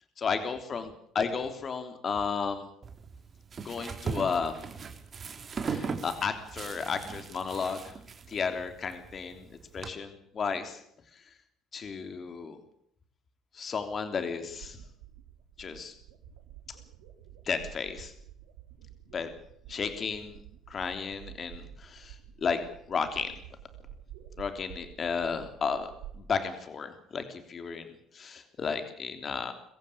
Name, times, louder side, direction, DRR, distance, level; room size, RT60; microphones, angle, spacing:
voice 1, 0.2-2.7 3.6-4.6 5.6-8.0 8.3-10.8 11.1-11.3 11.7-12.6 13.5-14.8 15.6-15.9 16.7-16.8 17.4-18.1 19.1-19.3 19.7-20.4 20.7-22.6 22.9-23.4 24.4-27.9 28.1-29.5, left 5 dB, 40° left, 8 dB, 3.3 m, -33 dB
sound 1, 2.8-9.9, right 5 dB, 40° right, 3.6 m, -39 dB
sound 2, 14.5-26.2, right 11 dB, 80° right, 3.3 m, -50 dB
24.5 x 15.0 x 8.7 m, 0.71 s
hypercardioid pair, 65°, 0 cm